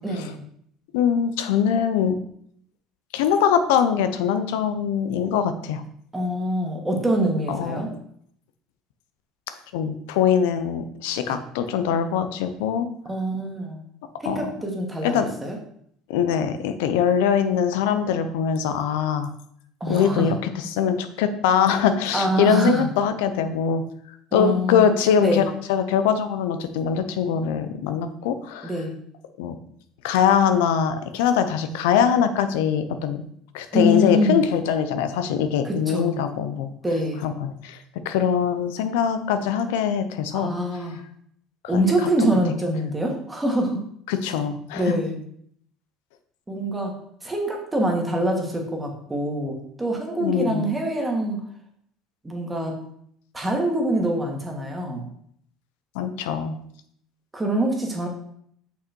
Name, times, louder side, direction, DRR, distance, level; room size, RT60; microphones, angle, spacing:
voice 1, 0.0-0.4 6.1-7.9 11.3-11.4 13.1-13.8 14.2-15.2 15.4-15.6 19.8-20.3 22.1-22.9 24.3-24.9 25.2-25.4 28.6-28.9 33.7-34.4 35.6-36.2 36.8-37.2 40.3-41.0 41.7-43.8 44.7-45.2 46.5-46.9 47.2-51.4 52.2-52.8 53.3-55.0 57.3-58.1, equal, 15° right, 1 dB, 2.0 m, -24 dB
voice 2, 0.9-2.2 3.1-5.8 7.5-7.8 9.7-12.9 14.3-14.4 15.0-15.3 16.1-19.3 19.9-23.8 24.3-25.4 25.7-28.7 29.4-29.6 30.0-33.2 33.5-36.7 37.2-37.8 38.0-40.5 41.7-41.8 42.2-42.3 44.1-45.0 50.2-50.7 55.9-56.6, left 8 dB, 85° left, 10 dB, 0.8 m, -22 dB
6.2 x 5.8 x 4.5 m, 0.67 s
supercardioid pair, 110°, 0 cm